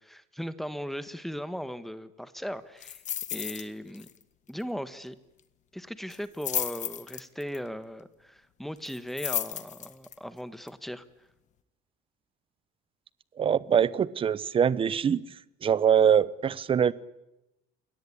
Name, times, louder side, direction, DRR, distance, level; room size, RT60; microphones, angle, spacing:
voice 1, 0.0-3.0 3.3-4.1 4.5-5.1 5.7-11.0, equal, ahead, 1.4 m, -38 dB
sound 1, 2.8-3.7 3.9-4.2 4.5-4.6 6.1-7.6 8.8-10.1 10.7-10.8, left 10 dB, 40° left, 1.7 m, -33 dB
voice 2, 13.4-15.2 15.6-16.9, right 8 dB, 30° right, 0.9 m, -23 dB
29.0 x 22.5 x 8.7 m
cardioid pair, 165°, 19 cm